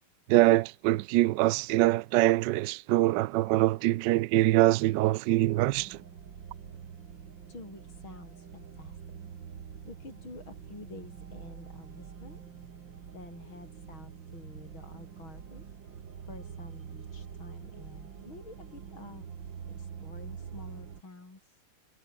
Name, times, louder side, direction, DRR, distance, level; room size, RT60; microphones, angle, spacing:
voice 1, 0.3-6.0, right 17 dB, 75° right, 1.0 m, -24 dB
sound 1, 5.5-21.0, right 7 dB, 60° right, 2.5 m, -45 dB
voice 2, 7.5-9.0 9.8-12.4 13.1-15.7 16.3-19.3 19.8-21.6, left 3 dB, 65° left, 7.1 m, -49 dB
omnidirectional pair, 2.4 m